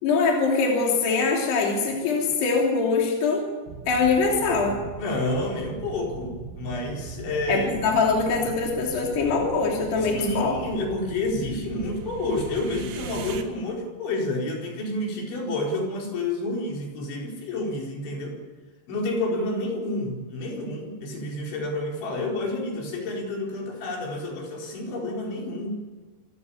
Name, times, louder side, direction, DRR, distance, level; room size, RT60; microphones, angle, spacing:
voice 1, 0.0-3.4 3.9-4.8 7.5-10.6, left 4 dB, 65° left, -1 dB, 5.1 m, -23 dB
sound 1, 3.7-13.4, right 6 dB, 85° right, 4.2 m, -39 dB
voice 2, 5.0-7.7 10.0-18.4 18.9-25.8, left 2 dB, 80° left, -1 dB, 6.9 m, -29 dB
27.5 x 16.5 x 8.7 m, 1.4 s
omnidirectional pair, 5.2 m